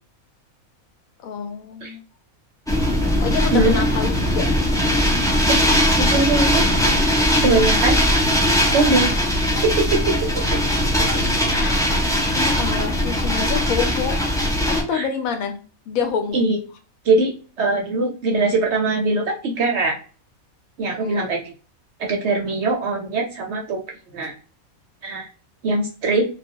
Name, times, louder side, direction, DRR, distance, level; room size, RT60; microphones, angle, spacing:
voice 1, 1.2-2.0 3.2-4.5 10.9-11.0 11.6-11.9 12.3-14.2 14.6-15.6 15.9-16.4 20.9-21.3, left 7 dB, 75° left, 5 dB, 1.0 m, -27 dB
sound 1, 2.7-14.8, equal, 5° left, 0.3 m, -19 dB
voice 2, 5.5-7.0 7.4-8.0 8.7-9.1 9.6-10.1 10.5-10.6 14.9-15.1 16.3-16.6 17.0-19.9 20.8-21.5 22.0-23.8 24.1-24.3 25.0-25.3 25.6-26.2, right 3 dB, 65° right, 2 dB, 0.7 m, -21 dB
2.3 x 2.3 x 2.6 m, 0.38 s
omnidirectional pair, 1.5 m